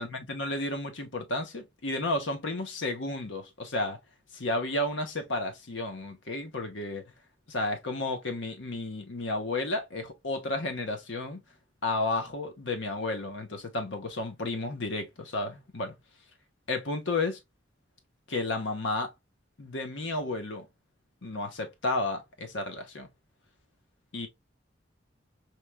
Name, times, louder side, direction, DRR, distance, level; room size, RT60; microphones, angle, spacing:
voice 1, 0.0-4.0 4.3-7.0 7.5-11.4 11.8-15.9 16.7-17.4 18.3-19.1 19.6-20.7 21.2-23.1 24.1-24.3, left 2 dB, 85° left, 1.1 m, -32 dB
5.0 x 3.0 x 2.2 m
head